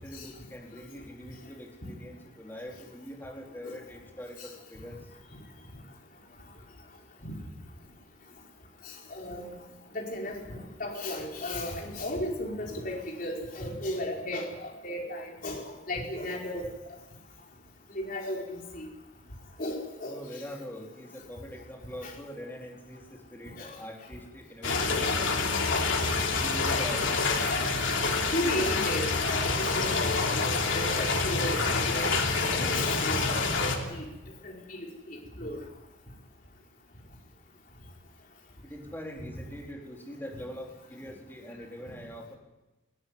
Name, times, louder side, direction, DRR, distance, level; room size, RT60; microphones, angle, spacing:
voice 1, 0.0-5.0 20.1-25.8 26.4-27.1 38.6-42.3, equal, 10° left, 0 dB, 3.9 m, -43 dB
voice 2, 8.8-9.5 9.9-16.7 17.9-18.9 19.6-20.2 22.0-22.1 23.6-23.8 27.4-27.5 28.3-34.0 34.4-35.6, left 1 dB, 45° left, 0 dB, 4.9 m, -35 dB
sound 1, 24.6-33.8, left 4 dB, 80° left, 3.2 m, -27 dB
20.5 x 17.5 x 9.8 m, 1.0 s
head